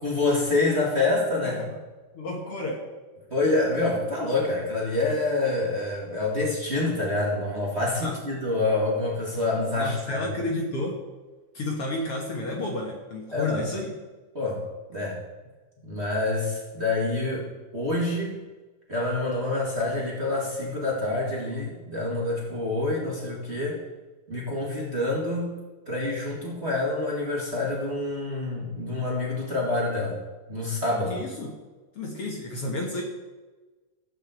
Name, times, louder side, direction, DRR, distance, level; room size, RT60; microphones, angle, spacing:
voice 1, 0.0-1.6 3.3-10.2 13.3-13.6 14.3-14.7 14.9-15.2 15.8-18.4 18.9-23.8 24.3-25.6 25.9-30.2 30.5-31.2, left 2 dB, 25° right, -4 dB, 2.1 m, -27 dB
voice 2, 1.4-1.7 2.1-2.8 8.0-8.1 9.8-11.0 11.5-13.9 31.1-31.5 32.0-33.0, left 2 dB, 55° left, 0 dB, 2.1 m, -31 dB
14.0 x 5.5 x 8.0 m, 1.2 s
omnidirectional pair, 3.7 m